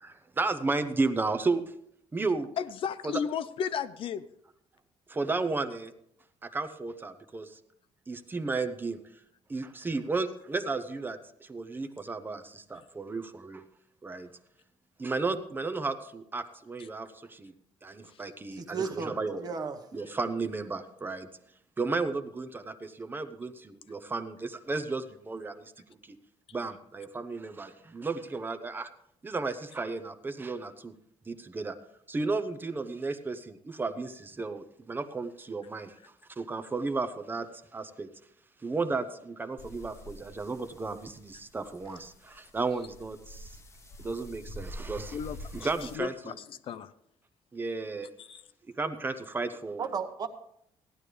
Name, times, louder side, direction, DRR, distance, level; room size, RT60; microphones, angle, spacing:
voice 1, 0.0-1.6 2.1-2.5 3.0-3.1 5.1-5.9 6.4-7.6 8.1-9.0 9.5-13.6 14.0-14.3 15.0-17.5 17.8-19.5 19.9-21.3 21.8-25.7 26.0-26.2 26.5-28.9 29.2-30.9 31.3-31.8 32.1-38.1 38.6-43.6 44.0-45.2 45.5-46.4 47.5-48.1 48.7-49.9, right 3 dB, 20° right, 11 dB, 0.7 m, -33 dB
voice 2, 2.6-4.2 18.1-18.2 45.1-46.9 48.2-48.4, left 7 dB, 55° left, 13 dB, 0.5 m, -34 dB
voice 3, 18.5-19.8 49.8-50.3, right 5 dB, 35° right, 7 dB, 1.1 m, -34 dB
sound 1, 39.6-45.9, equal, 25° left, 1.0 m, -46 dB
16.5 x 11.0 x 3.3 m, 0.71 s
cardioid pair, 155°, 11 cm